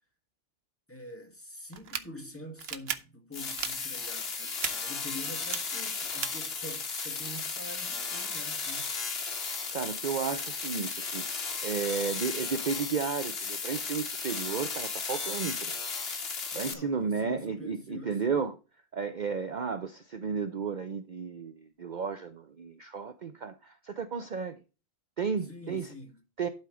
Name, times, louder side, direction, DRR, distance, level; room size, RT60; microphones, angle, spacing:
voice 1, 0.9-9.0 16.5-18.4 25.5-26.2, left 1 dB, 10° left, 1.9 m, -46 dB
sound 1, 1.7-2.0 2.6-3.0 3.5-3.7 4.6-4.7 5.4-5.6 6.2-6.3, right 7 dB, 65° right, 1.0 m, -33 dB
sound 2, 3.3-16.7, left 4 dB, 60° left, 1.6 m, -35 dB
voice 2, 9.7-15.8 16.3-18.6 18.9-24.6 25.2-25.9 26.4-26.5, right 5 dB, 45° right, 0.7 m, -33 dB
11.5 x 4.5 x 4.9 m
omnidirectional pair, 1.2 m